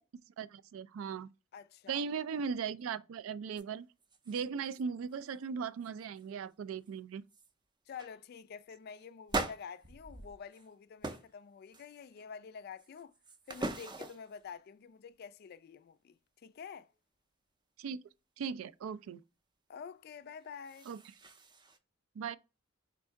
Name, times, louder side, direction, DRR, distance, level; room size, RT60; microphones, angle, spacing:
voice 1, 0.4-1.3 1.9-3.9 4.3-7.2 17.8-18.0 18.4-19.2 20.9-21.0 22.2-22.4, right 6 dB, 85° right, 0.3 m, -38 dB
voice 2, 1.5-2.0 7.9-13.1 13.5-16.9 19.7-20.9, left 6 dB, 50° left, 0.3 m, -48 dB
sound 1, 3.6-3.7 4.0-4.8 5.1-5.4 5.8-6.3 6.9-7.0 7.3-7.5 8.0-8.2 9.3-10.7 11.0-11.3 11.7-12.2 12.8-14.4 20.4-21.8, right 2 dB, 20° right, 0.4 m, -41 dB
4.5 x 2.5 x 4.4 m
head